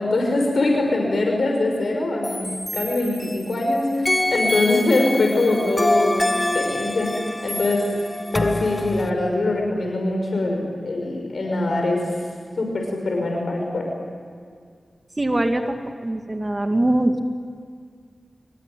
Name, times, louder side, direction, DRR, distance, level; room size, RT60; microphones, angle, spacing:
voice 1, 0.0-7.8 8.3-12.0 12.6-13.9, left 2 dB, 75° left, 2 dB, 6.0 m, -23 dB
sound 1, 2.2-3.6 4.1-9.1, left 1 dB, 25° left, 1.8 m, -26 dB
voice 2, 15.2-17.2, right 1 dB, 30° right, 5 dB, 2.3 m, -22 dB
27.0 x 23.0 x 9.3 m, 2.1 s
cardioid pair, 50°, 0 cm